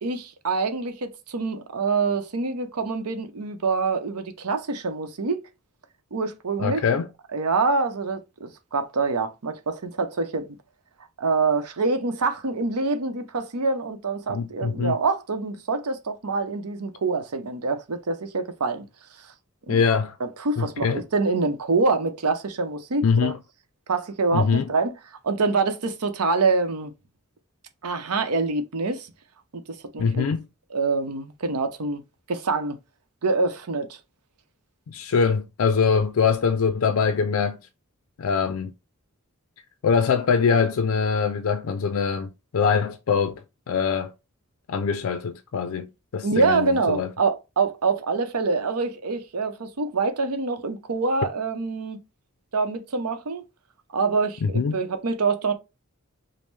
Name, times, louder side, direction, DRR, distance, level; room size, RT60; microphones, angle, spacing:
voice 1, 0.0-5.4 6.1-6.8 7.3-10.6 11.2-18.9 19.7-19.8 20.2-23.3 23.9-24.9 25.2-26.9 27.8-29.1 29.5-29.6 29.9-30.3 30.7-32.0 32.3-32.8 33.2-34.0 46.2-52.0 52.5-53.4 53.9-55.5, right 4 dB, 90° right, 0.7 m, -25 dB
voice 2, 6.6-7.1 14.3-15.0 19.7-20.1 20.6-21.0 23.0-23.4 24.3-24.7 30.0-30.4 34.9-37.6 38.2-38.7 39.8-43.3 43.7-44.1 44.7-47.1 54.4-54.8, left 5 dB, 65° left, 0.4 m, -23 dB
5.2 x 2.1 x 3.2 m
head